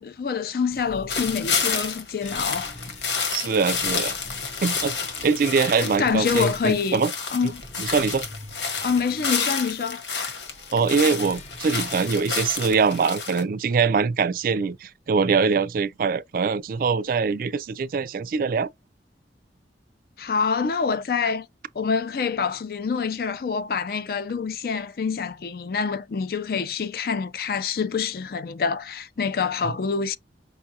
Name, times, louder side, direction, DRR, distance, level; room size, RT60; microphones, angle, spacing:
voice 1, 0.0-2.7 5.8-7.0 7.3-7.6 8.8-10.3 20.2-21.5 21.8-30.2, left 5 dB, 55° left, 0.4 m, -26 dB
sound 1, 0.7-12.7, left 1 dB, 40° left, 0.8 m, -45 dB
sound 2, 1.1-13.4, left 5 dB, 90° left, 1.3 m, -29 dB
voice 2, 3.3-4.2 4.6-7.1 7.4-7.5 7.8-8.3 10.7-18.7 29.6-29.7, right 5 dB, 50° right, 0.3 m, -23 dB
5.3 x 2.3 x 2.7 m
head